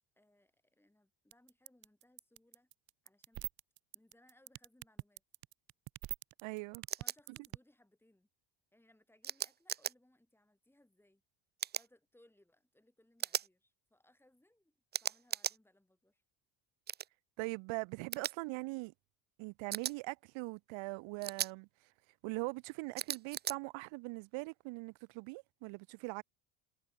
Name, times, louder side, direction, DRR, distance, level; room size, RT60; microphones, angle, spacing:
voice 1, 0.2-2.7 3.0-3.5 3.9-5.2 7.0-8.3 8.7-11.2 11.7-16.2, left 1 dB, 5° left, 6.1 m, -69 dB
sound 1, 1.3-7.6, right 16 dB, 50° right, 1.0 m, -42 dB
voice 2, 6.4-6.8 17.4-18.9 19.4-21.7 22.2-26.2, right 26 dB, 75° right, 1.1 m, -41 dB
sound 2, 6.9-7.2 9.2-9.9 11.6-11.9 13.2-13.5 14.9-15.6 16.9-17.1 18.1-18.3 19.7-19.9 21.2-21.5 23.0-23.6, right 10 dB, 25° right, 0.4 m, -37 dB
cardioid pair, 130°, 46 cm